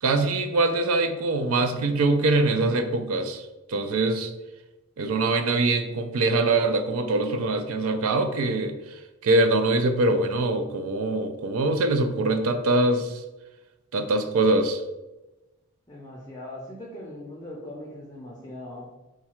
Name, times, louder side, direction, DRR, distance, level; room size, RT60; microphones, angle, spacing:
voice 1, 0.0-4.3 5.0-8.7 9.2-13.2 13.9-14.8, right 2 dB, 70° right, 7 dB, 0.4 m, -23 dB
voice 2, 15.9-18.9, left 1 dB, 15° left, -4 dB, 0.5 m, -40 dB
4.7 x 2.3 x 4.3 m, 1.0 s
head